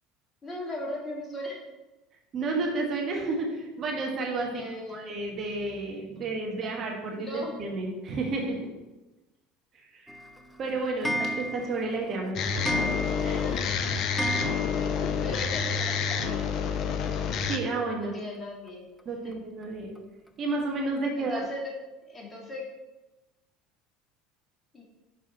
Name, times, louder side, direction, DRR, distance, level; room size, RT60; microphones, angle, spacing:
voice 1, 0.4-1.6 4.5-5.2 7.2-7.5 13.2-14.2 15.2-16.5 18.0-18.8 19.2-19.3 21.1-21.7 22.0-22.6 24.7-24.8, left 1 dB, 20° left, -3 dB, 2.1 m, -38 dB
voice 2, 2.3-4.6 4.9-8.6 9.7-10.1 10.6-12.7 17.5-18.2 19.0-19.9 20.4-21.4, right 3 dB, 40° right, 0 dB, 1.2 m, -31 dB
Clock, 10.1-15.2 15.5-15.6 15.8-15.9 16.1-16.2 17.4-17.5 18.0-18.1 18.7-18.8 19.3-19.4 20.0-20.1 20.6-20.7, equal, 5° left, 0.6 m, -33 dB
sound 1, 12.4-17.6, left 6 dB, 50° left, 0.5 m, -28 dB
5.7 x 4.7 x 4.1 m, 1.1 s
figure-of-eight pair, 70°, 0 cm